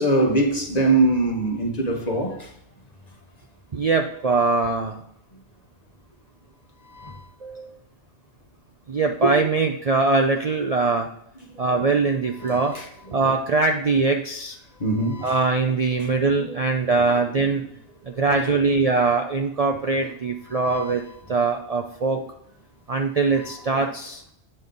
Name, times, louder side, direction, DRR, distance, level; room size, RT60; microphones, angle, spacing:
voice 1, 0.0-2.5 6.8-7.3 12.4-13.2 14.8-15.5 16.0-16.6 17.0-17.7 18.1-18.6 19.8-20.1 20.5-20.9 22.1-22.2 23.4-23.9, right 2 dB, 35° left, 1.2 m, -25 dB
voice 2, 3.7-5.0 7.4-7.8 8.9-11.1 11.6-12.7 13.1-14.5 15.2-17.6 18.1-21.0 21.3-22.2 22.9-24.2, right 3 dB, 45° right, 0.5 m, -22 dB
7.8 x 5.5 x 3.9 m
omnidirectional pair, 1.2 m